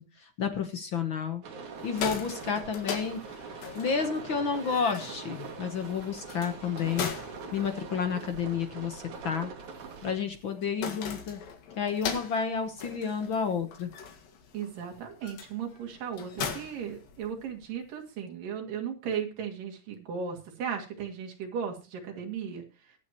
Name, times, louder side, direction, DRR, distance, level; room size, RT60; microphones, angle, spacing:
voice 1, 0.2-1.4 1.8-7.1 7.5-9.5 10.0-11.4 11.8-13.9, left 6 dB, 70° left, 6 dB, 1.2 m, -31 dB
sound 1, 1.4-10.1, right 5 dB, 60° right, 3.5 m, -43 dB
sound 2, 1.7-17.7, left 6 dB, 85° left, 3.7 m, -41 dB
voice 2, 14.5-22.6, right 7 dB, 80° right, 2 dB, 4.0 m, -36 dB
22.5 x 7.6 x 3.0 m, 0.30 s
omnidirectional pair, 3.9 m